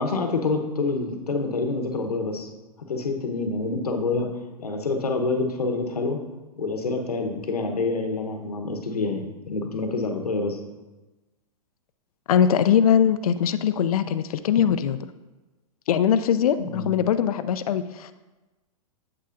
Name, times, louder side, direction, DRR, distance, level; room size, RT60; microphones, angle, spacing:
voice 1, 0.0-2.5 2.9-4.3 4.6-6.2 6.6-10.6 16.7-17.0, left 3 dB, 90° left, 5 dB, 1.0 m, -27 dB
voice 2, 12.3-15.0 15.9-18.2, left 8 dB, 75° left, 12 dB, 0.4 m, -21 dB
8.5 x 7.6 x 2.5 m, 1.1 s
hypercardioid pair, 115°, 19 cm